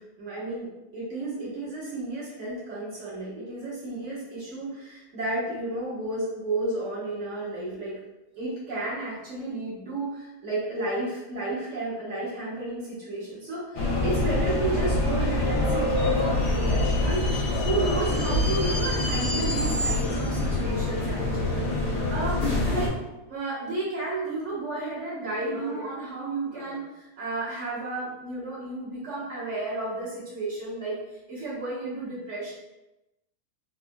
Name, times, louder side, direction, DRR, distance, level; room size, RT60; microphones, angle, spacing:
voice 1, 0.0-8.0 8.3-17.2 17.6-21.6 22.1-23.0 23.3-31.0 31.3-32.5, right 2 dB, 50° right, -9 dB, 1.7 m, -32 dB
sound 1, 13.8-22.9, left 2 dB, 85° left, 1.4 m, -25 dB
sound 2, 20.5-23.1 24.3-24.9 25.2-26.1 26.4-26.9 27.2-27.3, left 1 dB, 20° right, 0.8 m, -43 dB
4.2 x 2.5 x 2.2 m, 0.96 s
omnidirectional pair, 1.7 m